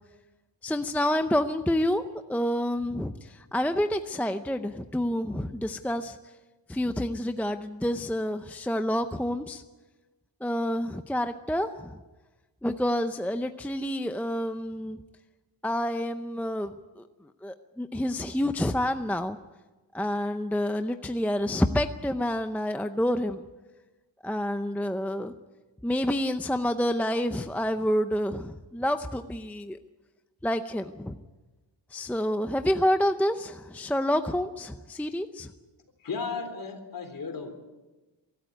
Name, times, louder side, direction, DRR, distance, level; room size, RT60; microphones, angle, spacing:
voice 1, 0.6-2.0 2.3-6.2 6.7-9.6 10.4-12.0 12.6-15.0 15.6-17.0 17.4-19.4 19.9-23.4 24.2-25.3 25.8-29.8 30.4-31.2 31.9-35.5, left 1 dB, 5° left, 8 dB, 0.6 m, -28 dB
voice 2, 36.0-37.6, left 5 dB, 45° left, 6 dB, 3.6 m, -34 dB
24.0 x 13.5 x 9.4 m, 1.2 s
wide cardioid pair, 150°, 45 cm